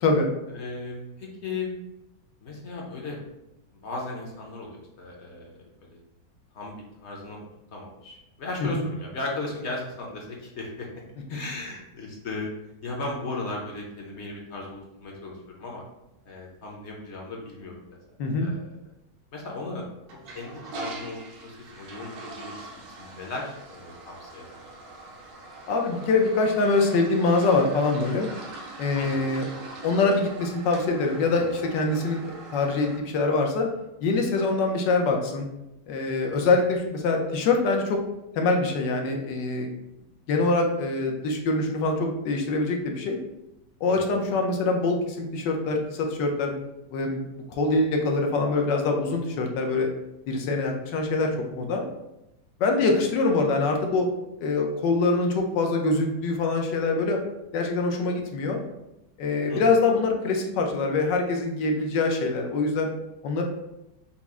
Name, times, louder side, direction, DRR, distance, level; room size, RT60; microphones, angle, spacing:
voice 1, 0.5-1.7 2.4-3.2 3.7-6.0 6.5-6.8 7.0-7.4 7.7-10.9 11.3-12.5 12.8-15.8 16.2-17.8 18.4-18.7 19.3-19.8 20.3-24.6 29.0-29.2 43.9-44.1 52.8-53.0 59.5-59.6, left 3 dB, 55° left, -1 dB, 0.8 m, -36 dB
voice 2, 18.2-18.5 25.7-28.3 28.8-29.5 29.8-33.7 34.0-35.5 35.9-38.0 38.3-39.7 40.3-43.2 43.8-46.5 46.9-47.2 47.5-49.9 50.3-51.9 52.6-54.1 54.4-57.2 57.5-58.6 59.2-62.9 63.2-63.4, left 3 dB, 85° left, 2 dB, 1.4 m, -24 dB
Toilet flush, 20.0-33.0, right 2 dB, 80° right, 1.4 m, -42 dB
5.7 x 2.0 x 3.5 m, 0.91 s
omnidirectional pair, 1.9 m